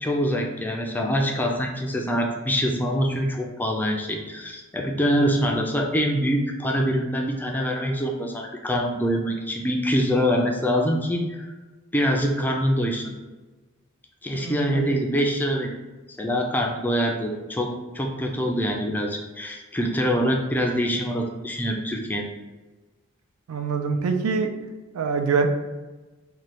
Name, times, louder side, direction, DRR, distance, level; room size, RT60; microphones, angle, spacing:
voice 1, 0.0-11.6 11.9-13.1 14.2-15.7 16.2-17.7 17.9-22.3, equal, 10° left, 1 dB, 0.3 m, -24 dB
voice 2, 14.3-15.0 23.5-24.5 24.9-25.5, right 5 dB, 85° right, 6 dB, 0.4 m, -25 dB
3.1 x 2.2 x 4.2 m, 1.2 s
head